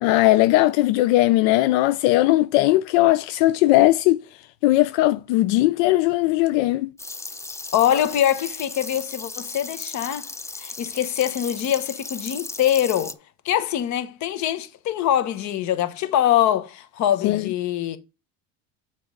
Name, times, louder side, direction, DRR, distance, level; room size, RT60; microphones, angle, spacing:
voice 1, 0.0-4.2 4.6-6.9 17.2-17.5, left 17 dB, 90° left, 0.5 m, -18 dB
sound 1, 7.0-13.1, left 3 dB, 10° left, 0.5 m, -36 dB
voice 2, 7.7-10.3 10.6-13.1 13.4-18.0, left 11 dB, 60° left, 1.2 m, -23 dB
7.1 x 4.2 x 5.1 m
cardioid pair, 110°, 32 cm